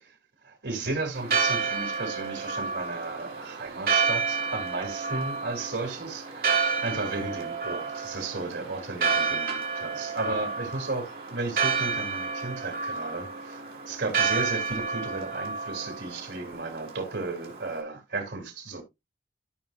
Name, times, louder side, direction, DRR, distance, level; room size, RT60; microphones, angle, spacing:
voice 1, 0.4-18.8, right 3 dB, 70° right, 3.0 m, -34 dB
Church bell, 1.1-17.8, right 5 dB, 50° right, 2.4 m, -30 dB
13.5 x 5.6 x 2.4 m
head